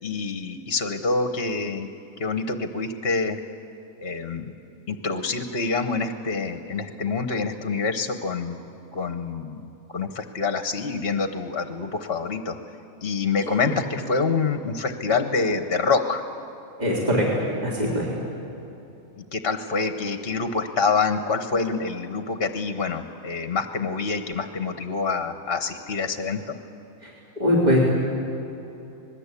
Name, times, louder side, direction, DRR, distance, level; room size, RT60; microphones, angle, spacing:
voice 1, 0.0-1.9 2.2-3.4 4.0-4.5 4.9-8.6 8.9-9.6 9.9-12.6 13.0-16.2 19.2-26.6, left 4 dB, 45° left, 8 dB, 1.3 m, -26 dB
voice 2, 16.8-18.1 27.0-27.1 27.4-27.8, equal, 30° right, -4 dB, 3.8 m, -21 dB
26.0 x 20.5 x 8.4 m, 3.0 s
omnidirectional pair, 1.5 m